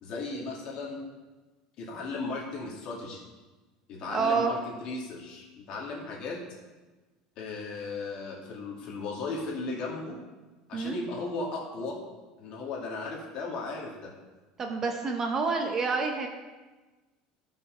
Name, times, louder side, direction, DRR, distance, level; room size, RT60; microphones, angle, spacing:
voice 1, 0.0-1.0 1.8-3.2 3.9-6.4 7.4-10.2 10.7-12.0 12.4-14.1, left 3 dB, 45° left, -2 dB, 2.4 m, -36 dB
voice 2, 4.1-4.5 10.7-11.0 14.6-16.3, right 4 dB, 20° right, 3 dB, 0.8 m, -28 dB
12.0 x 5.7 x 5.9 m, 1.2 s
cardioid pair, 170°, 2 cm